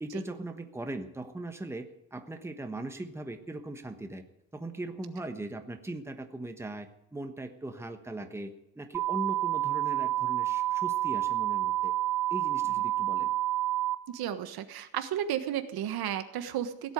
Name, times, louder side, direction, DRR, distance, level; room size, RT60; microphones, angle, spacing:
voice 1, 0.0-4.2 4.5-11.9 12.3-13.3, right 2 dB, 5° right, 6 dB, 1.2 m, -39 dB
sound 1, 8.9-13.9, right 14 dB, 60° right, 1.4 m, -29 dB
voice 2, 14.1-16.9, right 10 dB, 80° right, 9 dB, 1.4 m, -33 dB
17.0 x 8.1 x 9.3 m, 0.81 s
cardioid pair, 150°, 36 cm